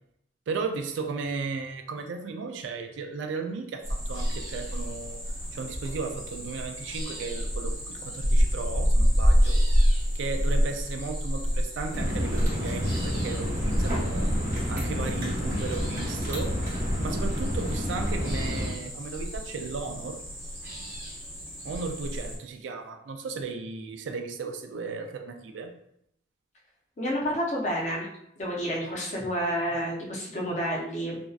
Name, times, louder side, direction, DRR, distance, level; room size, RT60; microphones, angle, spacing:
voice 1, 0.5-5.2 5.5-9.6 10.1-14.3 14.7-16.6 17.0-20.2 21.6-25.7, right 4 dB, 80° right, 6 dB, 0.3 m, -35 dB
sound 1, 3.8-22.4, equal, 15° right, 0.6 m, -28 dB
sound 2, 11.9-18.7, equal, 45° right, 0.8 m, -30 dB
voice 2, 27.0-28.1 28.4-31.2, equal, 40° left, -3 dB, 0.6 m, -29 dB
2.5 x 2.2 x 2.3 m, 0.74 s
head